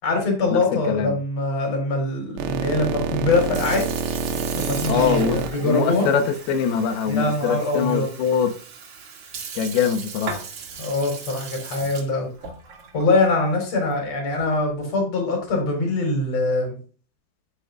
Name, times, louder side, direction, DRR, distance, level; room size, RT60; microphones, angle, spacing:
voice 1, 0.0-3.9 4.5-6.1 7.1-8.1 10.8-12.3 12.9-16.8, left 2 dB, 35° left, 2 dB, 4.7 m, -23 dB
sound 1, 2.4-6.9, right 5 dB, 85° right, 3.7 m, -27 dB
Sink (filling or washing) / Fill (with liquid), 3.2-14.7, right 5 dB, 50° right, 2.6 m, -38 dB
voice 2, 4.9-6.2 6.5-8.5 9.6-10.4, left 7 dB, 85° left, 6 dB, 2.2 m, -23 dB
12.0 x 10.0 x 2.4 m, 0.38 s
omnidirectional pair, 5.7 m